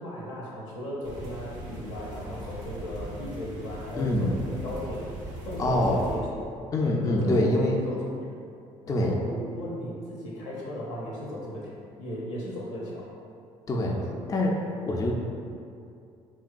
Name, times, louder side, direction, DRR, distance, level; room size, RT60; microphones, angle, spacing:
voice 1, 0.0-5.1 5.5-6.5 6.8-8.4 8.9-13.1, equal, 80° left, -5 dB, 0.6 m, -36 dB
sound 1, 1.0-6.2, right 1 dB, 90° right, 0.4 m, -39 dB
voice 2, 4.0-4.3 5.6-6.0 6.7-7.8 8.9-9.2 13.7-14.0 14.3-14.5 14.9-15.1, left 1 dB, 20° left, 0 dB, 0.3 m, -24 dB
2.8 x 2.2 x 2.4 m, 2.5 s
hypercardioid pair, 55°, 16 cm